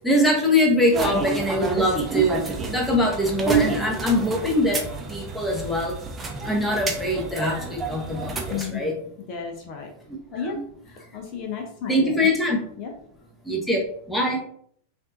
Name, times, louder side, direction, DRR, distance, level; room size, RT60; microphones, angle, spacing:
voice 1, 0.0-2.4 2.7-4.8 5.1-6.0 6.4-8.9 10.1-10.6 11.9-12.6 13.5-13.8 14.1-14.4, left 1 dB, 5° left, 1 dB, 1.0 m, -23 dB
sound 1, 0.9-8.6, right 4 dB, 15° right, 0.8 m, -29 dB
voice 2, 8.5-9.0 9.3-9.9 10.3-10.6 10.9-12.3 12.8-12.9 14.3-14.4, left 6 dB, 40° left, 2 dB, 0.7 m, -33 dB
5.7 x 2.6 x 2.5 m, 0.62 s
figure-of-eight pair, 90°, 0 cm